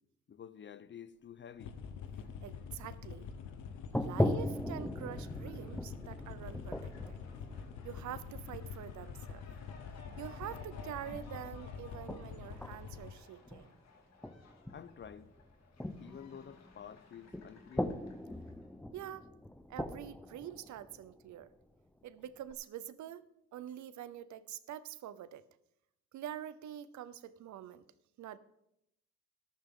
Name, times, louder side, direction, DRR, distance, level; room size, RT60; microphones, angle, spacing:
voice 1, 0.3-1.8 14.7-15.3 16.0-17.9, left 8 dB, 40° left, 0.7 m, -50 dB
Fowl, 1.3-18.7, left 4 dB, 60° left, 2.3 m, -59 dB
sound 1, 1.6-13.1, left 6 dB, 80° left, 1.1 m, -46 dB
voice 2, 2.4-3.3 3.9-7.2 7.8-9.4 10.2-13.7 18.9-19.3 19.7-21.5 22.0-23.2 23.5-25.4 26.1-27.8 28.2-28.4, right 11 dB, 70° right, 0.7 m, -45 dB
sound 2, 3.6-3.7 3.9-8.8 10.1-10.7 11.1-11.5 12.1-13.8 14.2-21.7 22.3-22.5, left 1 dB, 5° left, 0.7 m, -39 dB
13.0 x 12.0 x 3.8 m
cardioid pair, 90°, 30 cm